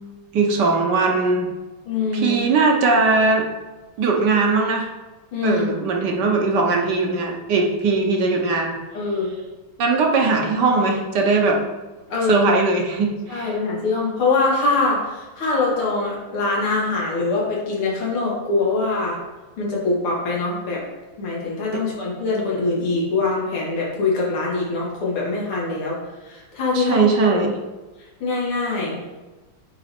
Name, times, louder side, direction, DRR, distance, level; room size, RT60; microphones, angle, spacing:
voice 1, 0.3-1.5 2.1-3.4 4.0-4.9 5.4-8.8 9.8-11.6 12.3-13.6 21.7-21.8 26.7-27.5, right 3 dB, 60° right, 1 dB, 1.3 m, -19 dB
voice 2, 1.9-2.4 5.3-5.7 8.9-9.3 12.1-12.5 13.3-19.2 19.6-20.8 21.2-26.0 26.2-27.4 28.2-29.0, left 3 dB, 90° left, -4 dB, 2.7 m, -23 dB
9.0 x 3.4 x 4.3 m, 1.2 s
omnidirectional pair, 2.3 m